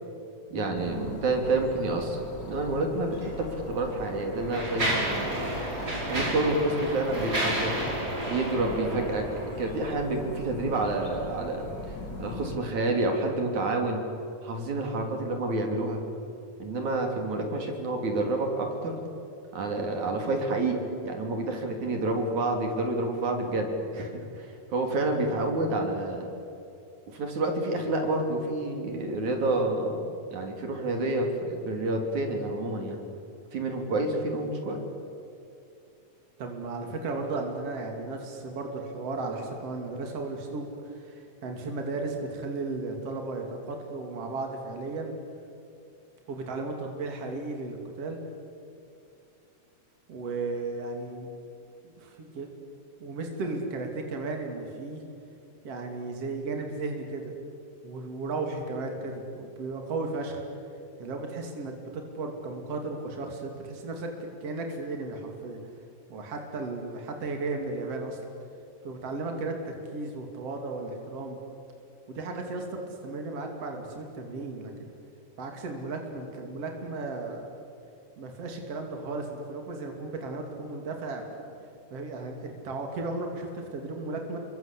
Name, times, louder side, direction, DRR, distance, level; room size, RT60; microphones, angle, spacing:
voice 1, 0.5-5.5 6.0-7.8 8.3-9.3 9.6-14.0 14.4-16.0 16.6-19.0 19.5-24.1 24.4-26.3 27.1-30.0 30.3-33.0 33.5-34.8, right 2 dB, 75° right, 3 dB, 4.5 m, -29 dB
sound 1, 0.7-12.6, left 2 dB, 35° left, 3.4 m, -41 dB
Mechanisms, 3.1-3.3 4.0-9.8, right 1 dB, 30° right, 5.8 m, -31 dB
voice 2, 36.4-45.1 46.3-48.2 50.1-51.3 51.8-52.6 53.0-55.0 55.6-57.3 57.8-60.4 61.0-65.6 66.1-68.2 68.8-71.4 72.1-74.9 75.4-77.5 78.2-81.4 81.9-84.4, right 3 dB, 55° right, 3 dB, 3.7 m, -35 dB
28.5 x 24.0 x 8.5 m, 2.6 s
omnidirectional pair, 3.4 m